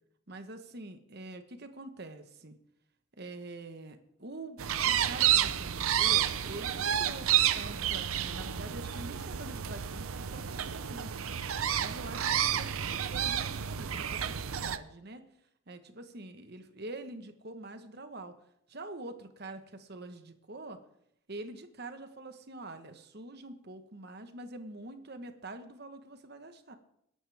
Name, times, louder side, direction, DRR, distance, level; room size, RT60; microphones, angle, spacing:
voice 1, 0.3-2.6 3.2-4.6 4.8-11.1 11.8-15.2 15.7-18.3 18.7-20.8 21.3-26.8, right 2 dB, 50° right, 8 dB, 1.2 m, -45 dB
sound 1, 4.6-14.8, right 10 dB, 80° right, 0.7 m, -30 dB
20.5 x 11.0 x 3.5 m, 0.73 s
head